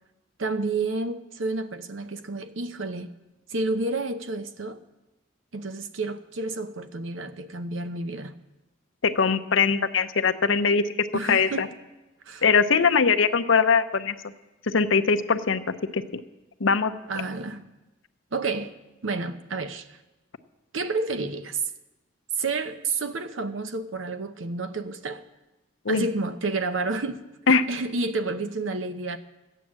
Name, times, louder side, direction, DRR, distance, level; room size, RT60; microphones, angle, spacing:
voice 1, 0.4-3.1 3.5-4.8 5.5-8.3 11.1-11.7 12.2-12.4 17.1-17.7 18.3-18.7 19.0-20.0 20.7-21.6 22.4-25.2 25.9-27.2 27.7-29.2, right 3 dB, 90° right, 0.9 m, -30 dB
voice 2, 9.0-10.8 11.3-11.7 12.4-14.1 14.7-15.6 15.9-16.2 16.6-16.9 25.8-26.1 27.5-27.6, left 5 dB, 85° left, 0.7 m, -21 dB
14.0 x 9.3 x 7.4 m
head